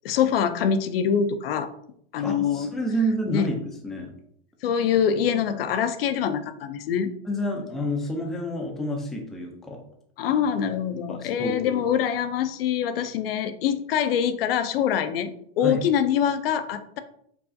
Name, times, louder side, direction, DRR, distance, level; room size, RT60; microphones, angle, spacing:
voice 1, 0.0-1.7 2.1-2.7 3.3-3.5 4.6-7.1 10.2-15.3 15.6-17.0, left 8 dB, 70° left, 10 dB, 0.5 m, -24 dB
voice 2, 2.2-4.1 7.3-9.8 11.1-11.8 15.6-15.8, equal, ahead, 1 dB, 0.3 m, -29 dB
4.7 x 2.4 x 2.6 m, 0.68 s
hypercardioid pair, 120°, 30 cm